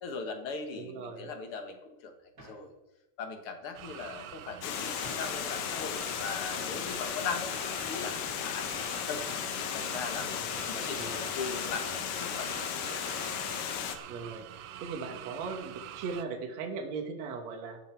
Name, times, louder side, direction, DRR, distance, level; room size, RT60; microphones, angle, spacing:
voice 1, 0.0-2.1 2.5-2.7 3.2-9.2 9.7-13.0, left 5 dB, 50° left, 6 dB, 1.9 m, -39 dB
sound 1, 0.7-1.0 1.7-1.8 2.3-2.7 3.7-4.3 4.7-4.8 5.0-5.4 5.8-6.2 6.5-6.8 7.5-8.7 9.3-10.2 10.5-10.6 10.9-11.3 12.1-12.2 12.5-12.7 14.0-14.2, right 2 dB, 25° right, 3.4 m, -54 dB
voice 2, 0.8-1.3 10.4-11.3 14.1-14.5 14.8-17.8, right 4 dB, 60° right, 4 dB, 2.3 m, -39 dB
sound 2, 3.7-16.2, right 11 dB, 90° right, 1.4 m, -45 dB
Water, 4.6-14.0, left 9 dB, 90° left, 2.7 m, -35 dB
13.0 x 12.0 x 4.5 m, 0.95 s
omnidirectional pair, 3.8 m